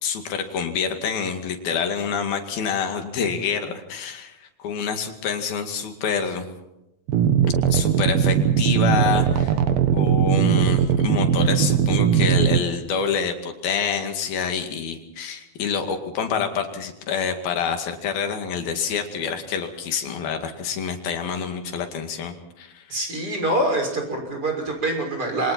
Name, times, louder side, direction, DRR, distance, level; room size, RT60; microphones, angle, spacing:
voice 1, 0.0-6.5 7.7-9.6 9.9-22.8, left 6 dB, 75° left, 5 dB, 4.1 m, -27 dB
sound 1, 7.1-12.6, right 9 dB, 80° right, 3.3 m, -19 dB
voice 2, 22.9-25.5, right 1 dB, 25° right, 2 dB, 6.5 m, -25 dB
28.0 x 24.5 x 4.4 m, 0.90 s
omnidirectional pair, 4.3 m